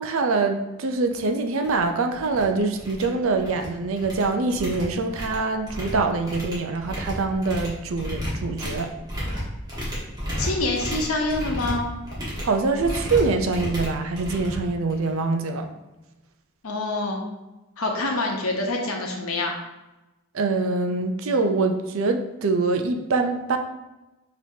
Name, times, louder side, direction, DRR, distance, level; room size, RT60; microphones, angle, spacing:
voice 1, 0.0-8.9 12.4-15.7 20.3-23.6, right 3 dB, 75° right, 6 dB, 0.5 m, -24 dB
sound 1, 1.1-1.2 1.6-1.8 2.1-2.4 2.7-3.7 4.0-15.2, equal, 20° right, 1.3 m, -33 dB
voice 2, 10.4-11.9 16.6-17.2 17.8-19.5, left 2 dB, 85° left, 1 dB, 0.9 m, -26 dB
5.9 x 2.9 x 2.8 m, 1.0 s
head